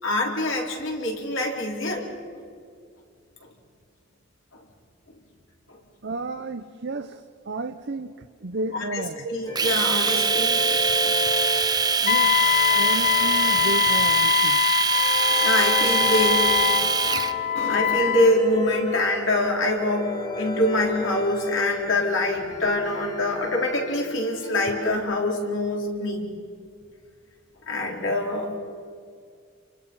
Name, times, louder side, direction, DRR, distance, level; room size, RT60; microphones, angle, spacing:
voice 1, 0.0-2.1 3.4-3.5 5.7-5.8 8.7-9.0 9.3-10.8 11.0-11.1 15.3-16.8 17.1-17.3 17.5-26.3 27.7-28.5, left 1 dB, 70° left, 0 dB, 4.4 m, -25 dB
voice 2, 6.0-9.3 12.0-12.3 12.7-14.6 24.4-24.5, right 2 dB, 55° right, 7 dB, 0.8 m, -32 dB
sound 1, 9.5-24.9, left 1 dB, 20° left, 1.7 m, -34 dB
Domestic sounds home sounds, 9.6-17.3, right 5 dB, 20° right, 0.7 m, -23 dB
Wind instrument woodwind instrument, 12.1-18.3, left 9 dB, 45° left, 0.6 m, -23 dB
29.5 x 24.5 x 5.6 m, 2.2 s
head